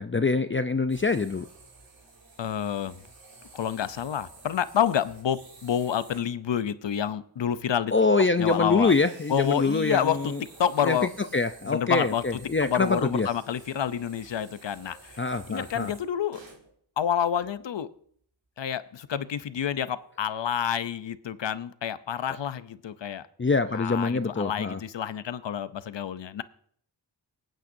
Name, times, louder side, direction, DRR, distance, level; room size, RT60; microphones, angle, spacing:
voice 1, 0.0-1.5 7.9-10.4 10.8-13.3 15.2-15.9 23.4-24.8, left 3 dB, 25° left, 9 dB, 0.6 m, -25 dB
sound 1, 0.9-6.3 7.7-7.8 8.3-16.7 17.3-17.7 18.2-18.3 18.7-18.8, right 3 dB, 85° right, 2.6 m, -51 dB
voice 2, 2.4-3.0 3.5-7.9 8.4-8.9 9.3-10.3 10.6-11.1 11.7-15.2 15.5-16.4 17.0-17.9 18.6-23.3 23.7-26.4, left 9 dB, 70° left, 14 dB, 0.7 m, -28 dB
24.5 x 9.0 x 2.7 m, 0.63 s
wide cardioid pair, 75°, 45 cm